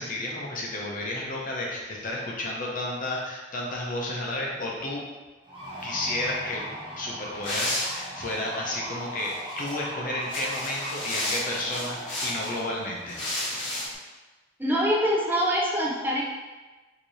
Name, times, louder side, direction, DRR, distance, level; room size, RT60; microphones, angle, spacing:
voice 1, 0.0-5.0 5.8-6.6 7.0-13.2, left 1 dB, 50° left, -3 dB, 0.8 m, -32 dB
sound 1, 5.4-13.9, right 1 dB, 30° right, 1.1 m, -40 dB
sound 2, 7.4-8.4 9.2-9.7 10.2-12.6 13.1-13.9, left 1 dB, 80° left, 1.1 m, -32 dB
voice 2, 14.6-16.2, equal, 10° right, -4 dB, 0.7 m, -24 dB
4.7 x 3.0 x 2.7 m, 1.2 s
head